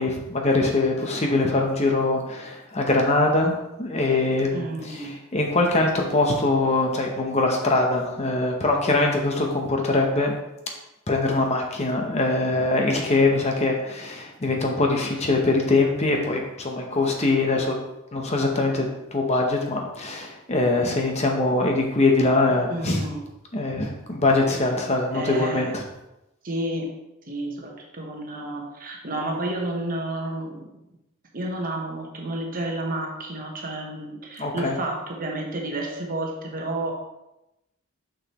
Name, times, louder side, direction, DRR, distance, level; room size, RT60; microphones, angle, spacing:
voice 1, 0.0-10.3 11.1-17.8 18.1-23.1 23.5-25.8 34.4-34.8, left 2 dB, 30° left, 2 dB, 0.8 m, -23 dB
voice 2, 4.5-5.2 22.7-23.2 25.1-25.8 26.4-27.0 27.3-30.7 31.3-36.9, right 1 dB, 40° right, 1 dB, 1.0 m, -31 dB
6.4 x 6.0 x 3.0 m, 0.93 s
head